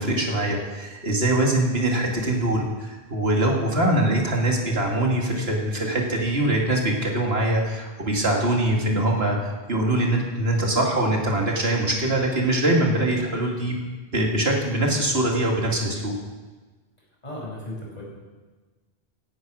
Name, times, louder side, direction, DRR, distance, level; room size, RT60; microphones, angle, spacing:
voice 1, 0.0-13.8 14.1-16.1, right 1 dB, 80° right, 0 dB, 2.6 m, -23 dB
voice 2, 17.2-18.0, left 1 dB, 40° left, -4 dB, 5.8 m, -35 dB
16.5 x 11.0 x 6.3 m, 1.3 s
omnidirectional pair, 1.0 m